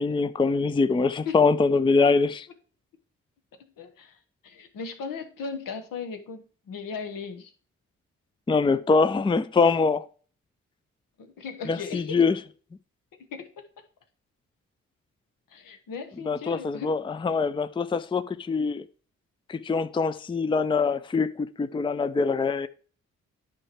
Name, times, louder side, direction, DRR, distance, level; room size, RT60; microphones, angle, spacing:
voice 1, 0.0-2.5 8.5-10.0 11.7-12.4 16.3-18.8 19.5-22.7, left 4 dB, 15° left, 0.5 m, -24 dB
voice 2, 3.8-4.2 4.4-7.5 11.2-12.2 13.1-13.5 15.5-16.9, left 5 dB, 75° left, 1.2 m, -37 dB
9.7 x 4.7 x 4.6 m
hypercardioid pair, 40°, 34 cm